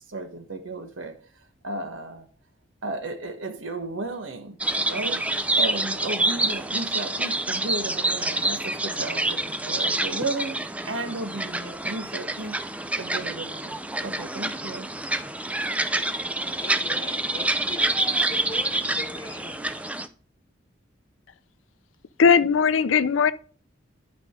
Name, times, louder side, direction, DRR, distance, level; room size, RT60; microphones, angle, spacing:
voice 1, 0.1-2.3 2.8-4.6 4.9-5.3 5.6-12.6 13.0-14.9, right 2 dB, 75° right, 1.4 m, -34 dB
sound 1, 4.6-20.1, right 2 dB, 5° right, 0.5 m, -27 dB
voice 2, 16.6-19.8, left 2 dB, 25° left, 1.5 m, -41 dB
voice 3, 22.2-23.3, left 6 dB, 75° left, 0.5 m, -18 dB
11.5 x 5.1 x 3.7 m
head